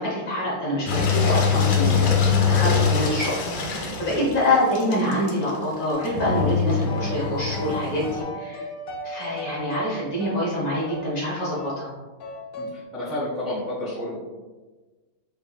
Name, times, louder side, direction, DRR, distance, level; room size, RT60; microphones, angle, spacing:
voice 1, 0.0-2.2 2.5-8.7 9.0-11.9, left 1 dB, 50° left, -6 dB, 1.4 m, -26 dB
Engine, 0.9-8.2, left 6 dB, 70° left, 1.4 m, -23 dB
sound 1, 5.9-6.6 6.9-11.1 11.5-11.8 12.2-12.8, equal, 85° left, 0.7 m, -36 dB
voice 2, 12.5-14.2, left 1 dB, 30° right, -10 dB, 0.9 m, -30 dB
4.9 x 3.3 x 2.3 m, 1.3 s
omnidirectional pair, 2.3 m